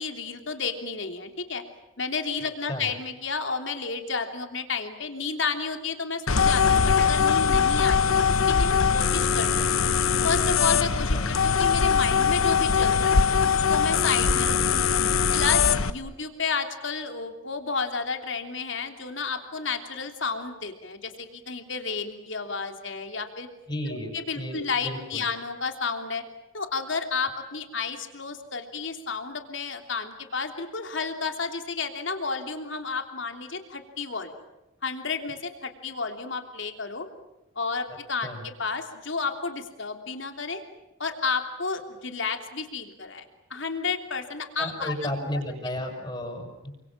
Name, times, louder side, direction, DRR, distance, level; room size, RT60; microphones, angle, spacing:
voice 1, 0.0-1.6 2.0-9.7 10.2-13.2 13.7-14.8 15.3-23.5 23.9-26.2 26.5-34.3 34.8-37.1 37.5-40.6 41.0-43.2 43.5-45.1, left 4 dB, 65° left, 6 dB, 3.2 m, -31 dB
sound 1, 6.3-15.9, left 6 dB, 90° left, 1.2 m, -22 dB
voice 2, 23.7-25.2 38.2-38.4 44.6-46.7, left 1 dB, 25° left, 2 dB, 6.8 m, -33 dB
29.5 x 26.0 x 7.6 m, 0.95 s
head